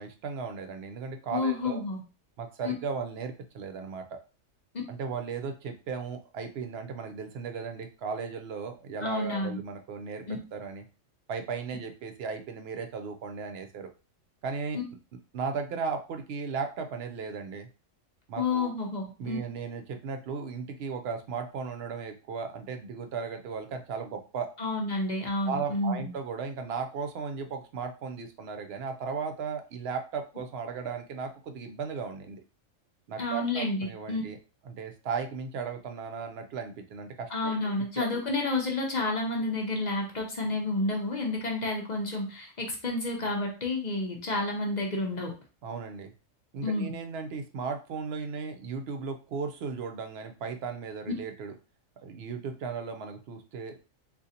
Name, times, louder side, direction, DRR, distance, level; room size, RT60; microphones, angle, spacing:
voice 1, 0.0-1.8 2.4-4.2 4.9-10.2 10.5-10.8 11.3-13.9 14.4-14.8 15.3-17.7 18.3-18.7 19.2-24.5 25.4-32.4 33.1-34.4 34.6-38.2 45.6-46.1 46.5-51.5 52.0-53.9, right 5 dB, 65° right, 6 dB, 0.7 m, -36 dB
voice 2, 1.3-2.0 2.6-2.7 9.0-9.6 10.3-10.4 18.4-19.4 24.6-26.1 33.2-34.2 37.3-45.3 46.6-46.9, left 2 dB, 45° left, 1 dB, 0.6 m, -30 dB
3.8 x 2.4 x 2.7 m, 0.33 s
omnidirectional pair, 1.4 m